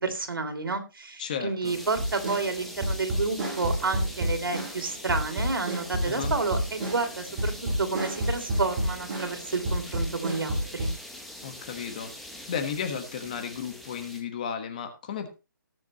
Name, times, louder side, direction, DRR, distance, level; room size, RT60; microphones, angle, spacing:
voice 1, 0.0-7.5 7.8-10.9, right 3 dB, 85° right, 6 dB, 3.2 m, -30 dB
voice 2, 1.2-1.8 6.0-6.3 11.4-15.3, left 7 dB, 20° left, 8 dB, 1.3 m, -34 dB
sound 1, 1.6-14.2, left 1 dB, ahead, 0.7 m, -43 dB
sound 2, 1.9-4.8 5.1-9.4 9.6-10.9, right 1 dB, 20° right, 7.0 m, -29 dB
19.0 x 7.1 x 3.0 m, 0.30 s
hypercardioid pair, 175°, 11 cm